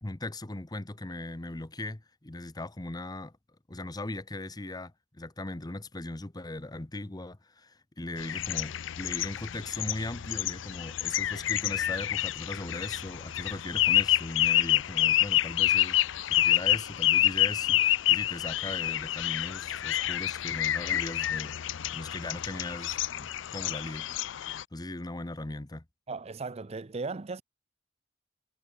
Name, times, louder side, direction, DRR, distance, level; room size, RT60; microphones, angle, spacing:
voice 1, 0.0-3.3 3.7-16.0 16.3-21.5 21.9-24.1 24.7-25.8, left 2 dB, 20° left, 0.9 m, -39 dB
sound 1, 8.2-24.6, left 13 dB, 75° left, 0.5 m, -28 dB
voice 2, 26.1-27.4, right 4 dB, 35° right, 0.6 m, -36 dB
head